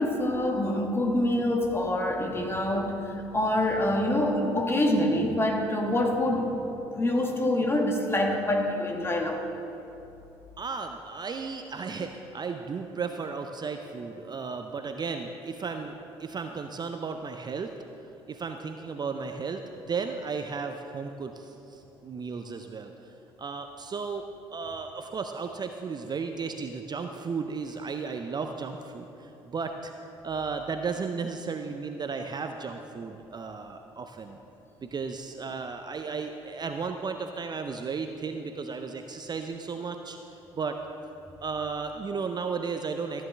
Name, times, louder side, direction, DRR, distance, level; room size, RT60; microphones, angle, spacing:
voice 1, 0.0-9.5, left 1 dB, 20° left, 2 dB, 1.5 m, -26 dB
voice 2, 10.6-17.7 18.3-19.6 19.9-22.9 23.4-24.2 24.5-29.9 30.2-34.4 34.8-40.2 40.6-40.8 41.4-43.2, right 5 dB, 30° right, 6 dB, 0.6 m, -34 dB
14.0 x 9.5 x 3.4 m, 2.9 s
figure-of-eight pair, 50°, 13 cm